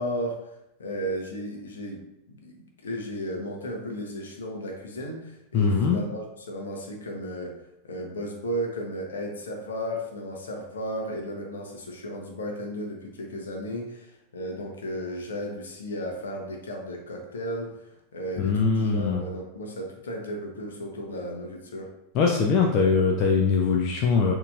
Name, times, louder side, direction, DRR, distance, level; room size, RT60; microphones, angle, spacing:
voice 1, 0.0-7.6 7.8-21.9, equal, 65° left, 1 dB, 1.0 m, -34 dB
voice 2, 5.5-6.0 18.4-19.2 22.1-24.3, left 5 dB, 40° left, 1 dB, 0.6 m, -22 dB
6.8 x 3.0 x 2.6 m, 0.85 s
figure-of-eight pair, 90°, 0 cm